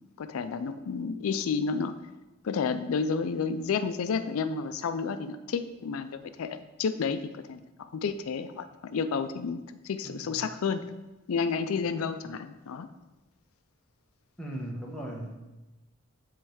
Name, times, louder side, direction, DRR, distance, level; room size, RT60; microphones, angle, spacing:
voice 1, 0.2-2.0 2.4-7.2 7.5-7.6 7.9-10.8 11.3-12.9, left 5 dB, 85° left, 11 dB, 0.4 m, -31 dB
voice 2, 10.0-10.4 14.4-15.4, right 1 dB, 5° left, -3 dB, 1.1 m, -38 dB
7.8 x 3.2 x 6.3 m, 1.1 s
head